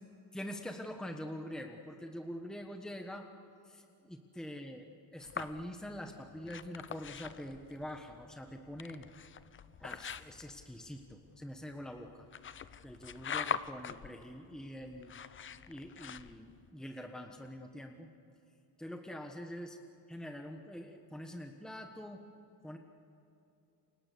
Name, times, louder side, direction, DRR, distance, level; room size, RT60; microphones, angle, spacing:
voice 1, 0.3-3.3 3.7-3.8 4.1-4.9 5.1-9.1 9.8-12.3 12.8-15.1 15.7-18.1 18.8-19.8 20.1-22.2 22.6-22.8, equal, ahead, 4 dB, 1.4 m, -44 dB
sound 1, 5.2-16.7, left 8 dB, 35° left, 0.7 m, -44 dB
29.0 x 25.0 x 6.9 m, 2.8 s
cardioid pair, 135°, 36 cm